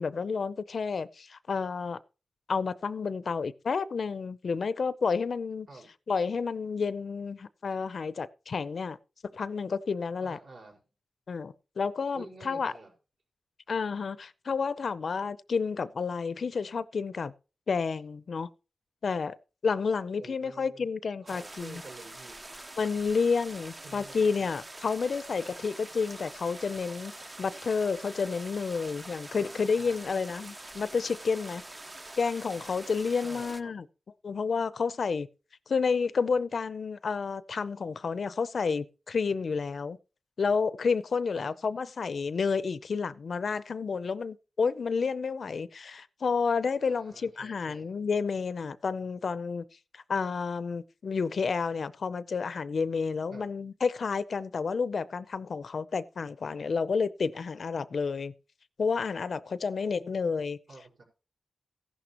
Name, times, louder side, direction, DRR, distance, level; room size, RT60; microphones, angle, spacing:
voice 1, 0.0-2.0 2.5-5.7 6.1-9.0 9.3-10.4 11.3-12.7 13.7-17.3 17.7-18.5 19.0-19.4 19.6-21.8 22.8-27.1 27.4-31.6 32.2-33.8 34.2-35.3 35.7-40.0 40.4-49.6 49.9-58.3 58.8-60.6, left 5 dB, 60° left, 0.5 m, -30 dB
voice 2, 10.2-10.8 12.1-12.9 20.2-20.9 21.2-22.4 23.8-24.2 29.3-30.2 33.2-33.7 41.3-41.5 46.8-47.9 53.3-53.5 59.7-61.0, right 3 dB, 70° right, 5.4 m, -49 dB
sound 1, 21.3-33.6, right 2 dB, 20° right, 0.5 m, -45 dB
15.0 x 11.0 x 2.9 m
wide cardioid pair, 155°, 0 cm